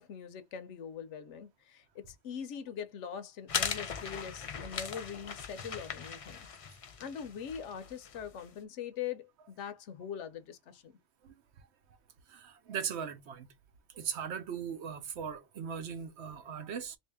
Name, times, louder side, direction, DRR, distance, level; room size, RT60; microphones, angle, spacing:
voice 1, 0.0-6.5 6.8-10.9, left 8 dB, 70° left, 0.9 m, -42 dB
sound 1, 3.5-8.4, left 6 dB, 55° left, 0.4 m, -39 dB
voice 2, 12.3-13.5 13.9-17.0, right 7 dB, 65° right, 0.9 m, -39 dB
3.2 x 2.7 x 3.4 m
omnidirectional pair, 1.3 m